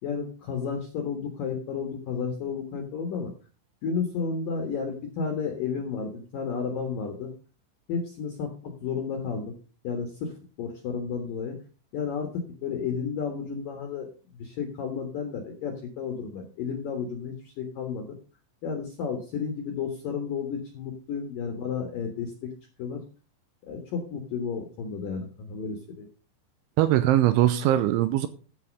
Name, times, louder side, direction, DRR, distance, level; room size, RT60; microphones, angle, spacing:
voice 1, 0.0-3.3 3.8-7.3 7.9-9.5 9.8-10.3 10.6-11.6 11.9-18.2 18.6-22.5 22.8-23.0 23.6-26.1, left 6 dB, 65° left, 2.3 m, -32 dB
voice 2, 26.8-28.3, right 13 dB, 80° right, 2.9 m, -21 dB
13.5 x 6.3 x 5.2 m
omnidirectional pair, 5.9 m